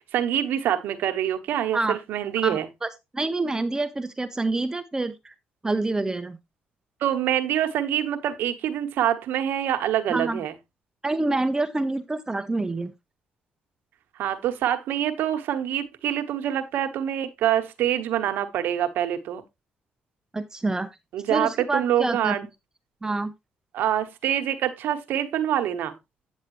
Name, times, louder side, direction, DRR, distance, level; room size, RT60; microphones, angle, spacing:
voice 1, 0.1-2.7 7.0-10.5 14.2-19.4 21.1-22.5 23.7-25.9, right 10 dB, 80° right, 1.2 m, -25 dB
voice 2, 2.4-5.3 5.6-6.4 10.1-10.4 11.0-12.9 20.3-20.9 21.3-22.3 23.0-23.3, right 2 dB, 20° right, 0.7 m, -27 dB
9.1 x 7.3 x 3.1 m
cardioid pair, 80°, 3 cm